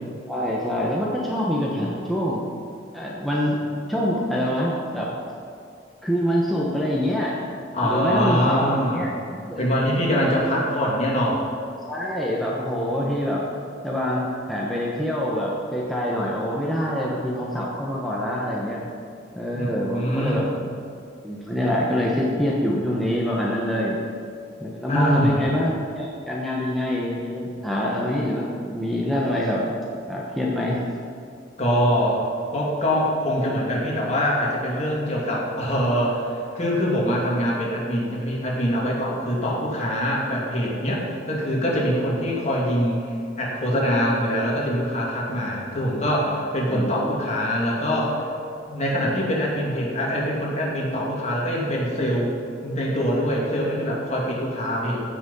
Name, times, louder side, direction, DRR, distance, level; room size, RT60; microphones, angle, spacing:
voice 1, 0.3-2.5 2.9-5.1 6.0-7.5 7.8-9.7 10.1-10.4 11.9-13.5 13.8-18.8 19.3-20.7 21.2-24.0 24.6-29.7 30.1-30.9 46.7-46.9, equal, ahead, -5 dB, 1.2 m, -25 dB
voice 2, 7.7-9.1 9.6-11.5 19.5-20.4 24.9-25.4 31.6-32.2 32.5-43.1 43.4-48.3 48.7-52.3 52.6-55.0, equal, 40° left, -4 dB, 2.5 m, -24 dB
15.5 x 6.2 x 5.5 m, 2.3 s
head